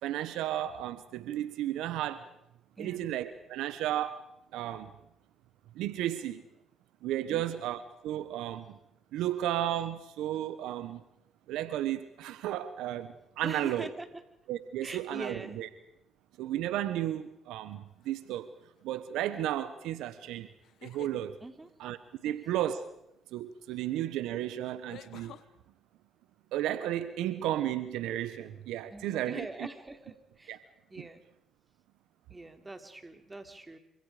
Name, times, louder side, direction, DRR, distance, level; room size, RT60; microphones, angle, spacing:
voice 1, 0.0-2.3 2.8-4.2 4.5-4.9 5.7-6.4 7.0-8.8 9.1-11.0 11.5-13.9 14.5-15.7 16.4-18.5 18.8-20.5 20.8-21.3 21.8-22.0 22.2-22.9 23.3-25.4 26.5-29.7 30.5-30.6 31.0-31.1, right 12 dB, 80° right, 13 dB, 1.1 m, -33 dB
voice 2, 2.8-3.1 7.3-7.6 13.4-14.1 14.8-15.6 20.9-21.0 21.4-21.7 22.2-22.5 28.9-30.6 30.9-31.2 32.3-33.8, right 2 dB, 20° right, 7 dB, 3.3 m, -43 dB
sound 1, 18.0-18.5 20.6-21.2 23.5-23.6 24.9-25.5, left 10 dB, 75° left, 1.1 m, -49 dB
27.5 x 26.0 x 5.0 m, 0.82 s
supercardioid pair, 60°, 0 cm